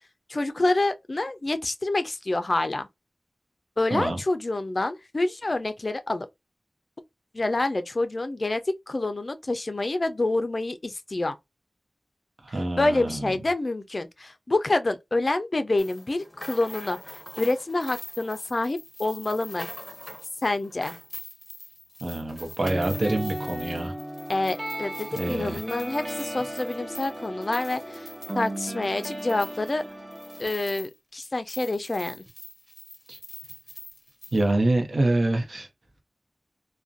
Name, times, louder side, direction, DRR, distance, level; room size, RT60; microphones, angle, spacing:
voice 1, 0.3-2.9 3.8-6.3 7.3-8.6 8.9-11.4 12.5-19.7 20.4-21.0 24.3-28.1 28.3-29.8 30.4-32.2, left 2 dB, 50° left, 0.4 m, -27 dB
voice 2, 12.4-13.2 22.0-23.9 25.1-25.6 33.1-33.2 34.3-35.7, right 2 dB, 65° right, 0.7 m, -26 dB
sound 1, 15.8-31.0 31.2-34.4, left 1 dB, 15° left, 0.7 m, -43 dB
sound 2, 22.6-30.5, right 1 dB, 30° right, 0.7 m, -36 dB
2.4 x 2.1 x 2.5 m
cardioid pair, 45°, 0 cm